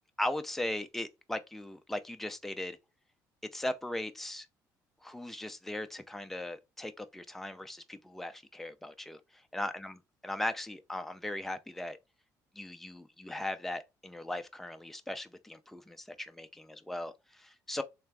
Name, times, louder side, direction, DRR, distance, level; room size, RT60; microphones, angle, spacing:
voice 1, 0.2-2.8 3.5-4.5 5.0-9.2 9.5-9.9 10.2-12.0 12.6-17.8, left 1 dB, 5° left, 0.5 m, -38 dB
3.5 x 3.3 x 3.4 m
cardioid pair, 135°, 7 cm